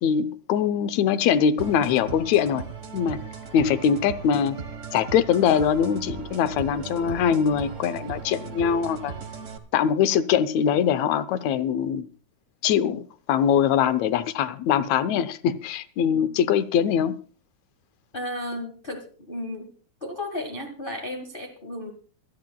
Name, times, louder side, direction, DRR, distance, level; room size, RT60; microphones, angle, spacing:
voice 1, 0.0-2.6 2.9-3.2 3.5-4.6 4.9-9.1 9.7-12.1 12.6-13.0 13.3-17.2, left 8 dB, 75° left, 1.9 m, -22 dB
sound 1, 1.6-9.6, right 5 dB, 90° right, 0.6 m, -37 dB
voice 2, 16.0-16.3 18.1-19.7 20.0-21.9, left 1 dB, 30° left, 1.0 m, -34 dB
26.0 x 10.5 x 2.3 m
omnidirectional pair, 3.4 m